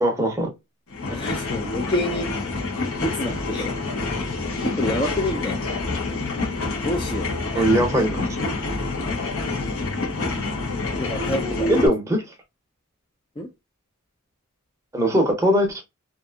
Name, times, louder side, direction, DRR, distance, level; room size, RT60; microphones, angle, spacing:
voice 1, 0.0-0.5 7.5-8.3 11.7-12.2 14.9-15.8, equal, 15° right, 0.7 m, -20 dB
sound 1, 0.9-11.9, left 3 dB, 60° left, 0.8 m, -27 dB
voice 2, 1.1-2.3 3.0-3.8 4.6-5.6 6.8-7.8 8.8-9.0 11.0-11.9 13.4-13.5, left 1 dB, 20° left, 0.4 m, -28 dB
2.6 x 2.5 x 2.3 m
head